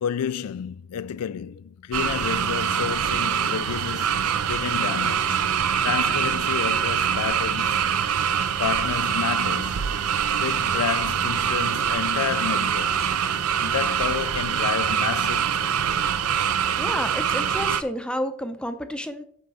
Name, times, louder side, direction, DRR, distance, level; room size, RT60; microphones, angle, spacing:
voice 1, 0.0-7.8 8.6-9.8 10.4-13.1 13.6-16.0, left 8 dB, 80° left, 0.4 m, -31 dB
sound 1, 1.9-17.8, right 8 dB, 80° right, 0.5 m, -24 dB
voice 2, 16.8-19.3, equal, 5° left, 0.6 m, -30 dB
6.5 x 6.0 x 4.8 m
head